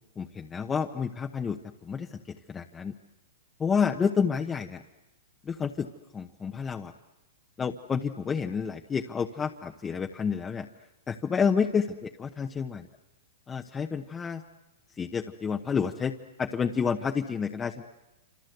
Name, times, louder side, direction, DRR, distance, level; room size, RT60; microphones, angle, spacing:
voice 1, 0.2-2.9 3.6-4.8 5.4-5.9 6.1-6.9 7.6-10.7 11.1-12.8 13.5-14.4 15.0-17.8, left 6 dB, 15° left, 4 dB, 1.1 m, -29 dB
27.5 x 26.5 x 8.1 m, 1.0 s
hypercardioid pair, 130°, 0 cm